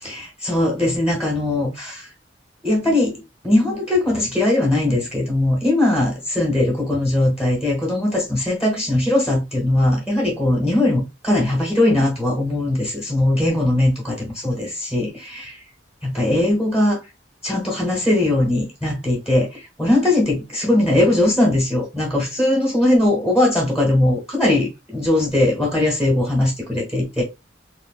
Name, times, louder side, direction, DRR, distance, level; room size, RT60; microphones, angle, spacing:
voice 1, 0.0-2.1 2.6-15.6 16.0-17.0 17.4-27.2, left 1 dB, ahead, 1.1 m, -20 dB
3.3 x 2.4 x 2.4 m
head